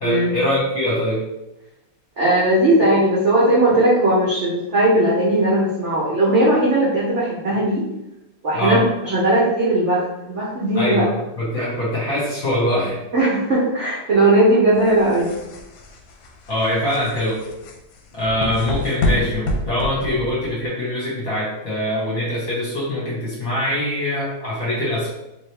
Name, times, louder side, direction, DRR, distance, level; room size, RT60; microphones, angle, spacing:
voice 1, 0.0-1.2 8.5-8.8 10.7-13.0 16.5-17.4 18.1-25.1, left 1 dB, 50° left, -6 dB, 1.1 m, -23 dB
voice 2, 2.2-7.8 8.4-11.0 13.1-15.3, right 1 dB, 70° right, -6 dB, 0.6 m, -18 dB
sound 1, 14.8-20.7, left 2 dB, 75° left, 1.3 m, -27 dB
3.5 x 2.8 x 3.2 m, 0.93 s
omnidirectional pair, 2.4 m